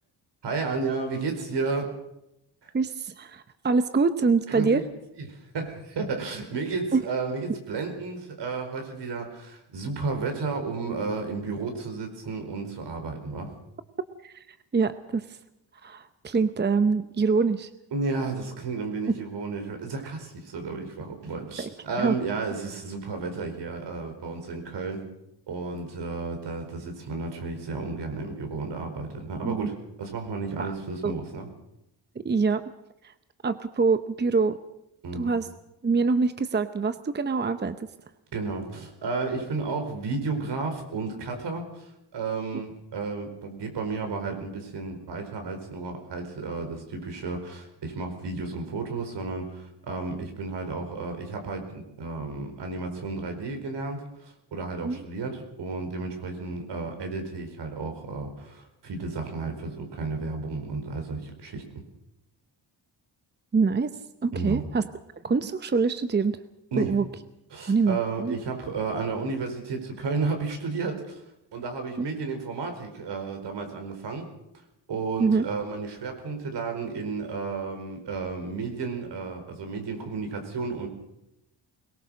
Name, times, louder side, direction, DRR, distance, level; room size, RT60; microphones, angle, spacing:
voice 1, 0.4-1.9 2.6-2.7 4.5-4.9 5.2-13.5 17.9-25.0 25.5-31.5 35.0-35.3 38.3-61.8 64.3-64.6 66.7-67.0 67.5-71.2 71.5-74.3 74.9-80.9, right 4 dB, 70° right, 5 dB, 4.7 m, -32 dB
voice 2, 2.7-4.8 6.9-7.0 14.2-14.4 14.7-15.4 15.8-17.7 19.1-19.2 21.6-21.7 22.0-22.2 29.4-29.7 30.6-30.7 31.0-31.1 32.2-32.7 33.0-33.1 33.4-34.6 35.1-35.5 35.8-37.8 54.8-55.0 63.5-63.9 64.2-64.9 65.2-66.4 66.8-67.0 67.7-68.4 72.0-72.1 75.2-75.5, right 4 dB, 25° right, 11 dB, 0.8 m, -25 dB
22.0 x 19.0 x 6.5 m, 0.86 s
cardioid pair, 95°, 43 cm